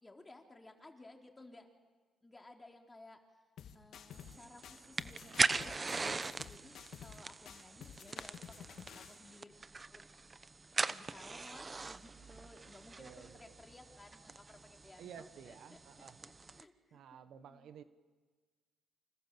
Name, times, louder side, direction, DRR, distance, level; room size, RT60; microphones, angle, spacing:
voice 1, 0.0-1.7 2.2-3.2 3.7-10.3 10.9-16.1 16.5-17.7, left 2 dB, 20° left, 3 dB, 3.7 m, -58 dB
sound 1, 3.6-4.4 4.6-7.2 7.5-9.2, left 8 dB, 70° left, 2.4 m, -52 dB
sound 2, 4.1-16.6, right 3 dB, 25° right, 1.0 m, -40 dB
voice 2, 13.0-13.5 15.0-16.2 16.9-17.8, right 8 dB, 70° right, 11 dB, 1.4 m, -53 dB
28.5 x 26.5 x 7.7 m, 1.4 s
cardioid pair, 90°, 0 cm